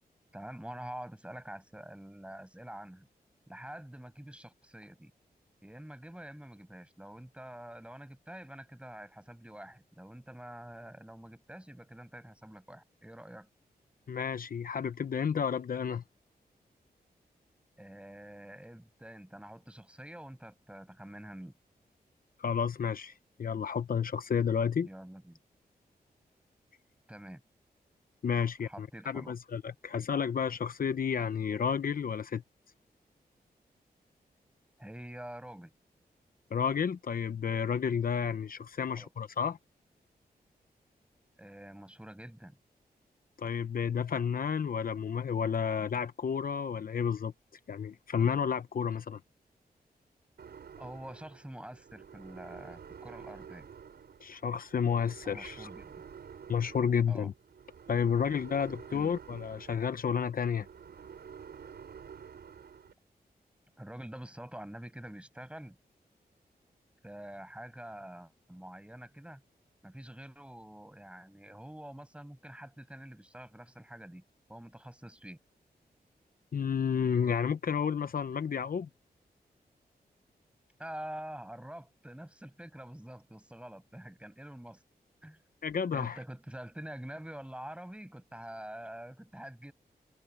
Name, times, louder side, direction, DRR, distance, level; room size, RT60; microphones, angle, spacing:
voice 1, 0.3-3.1 3.5-5.1 5.6-13.5 17.8-21.5 24.8-25.4 27.1-27.4 28.6-29.4 34.8-35.7 38.8-39.1 41.4-42.6 50.8-53.7 55.2-56.0 57.1-57.3 58.9-59.1 63.8-65.8 67.0-69.4 69.8-74.2 74.5-75.4 80.8-84.8 85.2-85.4 85.9-89.7, right 1 dB, 5° right, 6.2 m, -46 dB
voice 2, 14.1-16.0 22.4-23.1 23.4-24.9 28.2-32.4 36.5-39.6 43.4-47.3 47.7-49.2 54.2-55.7 56.5-57.3 57.9-60.7 76.5-78.9 85.6-86.2, left 7 dB, 60° left, 0.8 m, -31 dB
sound 1, 50.4-62.9, right 7 dB, 85° right, 6.7 m, -50 dB
open air
wide cardioid pair, 95°, 16 cm